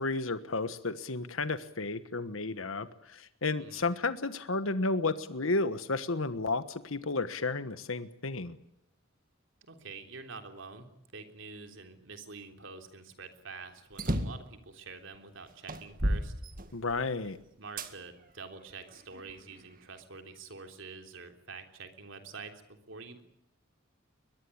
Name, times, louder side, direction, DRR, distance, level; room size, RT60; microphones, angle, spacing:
voice 1, 0.0-8.6 16.7-17.4, left 3 dB, 80° left, 11 dB, 1.3 m, -32 dB
voice 2, 3.6-3.9 9.7-16.3 17.6-22.5 22.9-23.2, right 4 dB, 65° right, 5 dB, 3.5 m, -47 dB
sound 1, 13.9-14.5 15.1-15.2 15.7-17.1 17.8-17.9 18.6-19.7, right 1 dB, 40° right, 2.0 m, -33 dB
22.5 x 21.5 x 8.8 m, 0.77 s
head